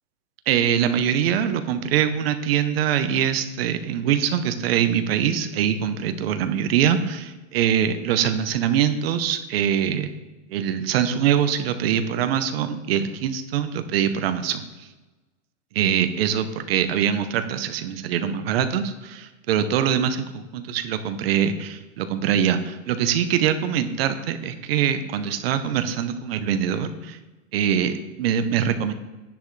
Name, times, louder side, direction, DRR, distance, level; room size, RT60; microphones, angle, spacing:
voice 1, 0.5-10.1 10.5-14.7 15.7-27.2 27.5-28.9, right 9 dB, 50° right, 9 dB, 0.9 m, -23 dB
10.5 x 10.5 x 3.2 m, 1.1 s
supercardioid pair, 175°, 40 cm